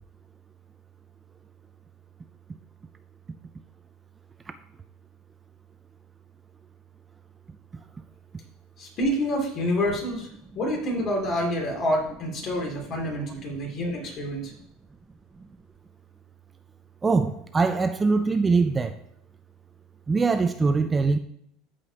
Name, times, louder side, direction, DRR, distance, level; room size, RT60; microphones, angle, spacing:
voice 1, 8.8-10.3 10.5-14.5, equal, 40° left, 2.8 m, -27 dB
voice 2, 17.0-19.0 20.1-21.2, right 4 dB, 20° right, 0.4 m, -22 dB
13.5 x 5.0 x 2.9 m
supercardioid pair, 130°, 0 cm